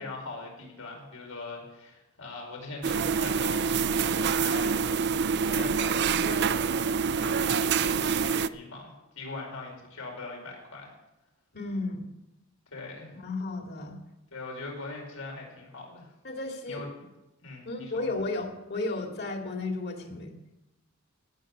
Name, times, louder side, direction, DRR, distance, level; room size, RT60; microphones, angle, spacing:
voice 1, 0.0-4.8 5.1-10.9 12.7-13.1 14.3-16.1 16.7-16.9 17.4-18.1, left 3 dB, 80° left, 1 dB, 4.9 m, -41 dB
sound 1, 2.8-8.5, right 6 dB, 50° right, 0.5 m, -26 dB
voice 2, 11.5-12.1 13.2-14.0 16.2-16.8 17.7-20.3, left 2 dB, 50° left, 2 dB, 2.4 m, -33 dB
17.5 x 7.8 x 8.2 m, 0.97 s
head